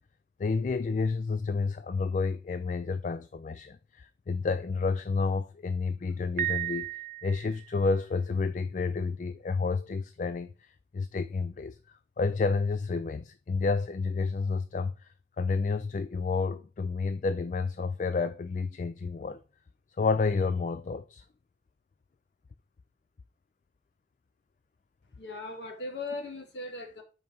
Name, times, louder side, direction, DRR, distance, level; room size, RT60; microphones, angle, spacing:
voice 1, 0.4-6.9 7.2-11.8 12.2-15.1 15.4-19.4 20.0-21.2, left 4 dB, 45° left, 0.3 m, -30 dB
Piano, 6.4-7.8, right 13 dB, 45° right, 0.4 m, -34 dB
voice 2, 25.2-27.0, left 2 dB, 85° left, 1.7 m, -38 dB
5.4 x 4.6 x 5.3 m
head